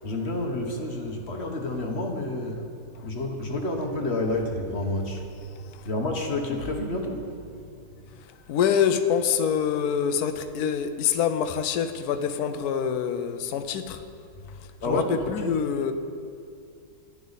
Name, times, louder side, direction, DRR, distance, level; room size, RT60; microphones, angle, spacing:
voice 1, 0.0-2.6 3.0-5.2 5.8-7.2 14.8-15.6, left 1 dB, 40° left, 2 dB, 1.1 m, -29 dB
voice 2, 8.5-14.0 14.9-15.9, left 7 dB, 65° left, 9 dB, 1.1 m, -25 dB
14.0 x 11.5 x 4.0 m, 2.4 s
omnidirectional pair, 2.0 m